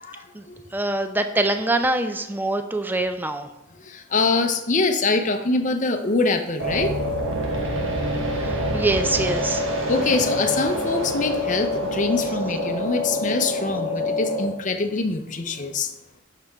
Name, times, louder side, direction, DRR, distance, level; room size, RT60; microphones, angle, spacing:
voice 1, 0.0-0.6 3.8-6.9 9.9-15.9, left 3 dB, 40° left, 6 dB, 0.6 m, -24 dB
voice 2, 0.7-3.5 8.4-9.7, right 2 dB, 10° right, 8 dB, 0.4 m, -24 dB
sound 1, 6.6-14.5, left 1 dB, 70° right, 1.3 m, -26 dB
6.6 x 5.6 x 3.5 m, 0.93 s
head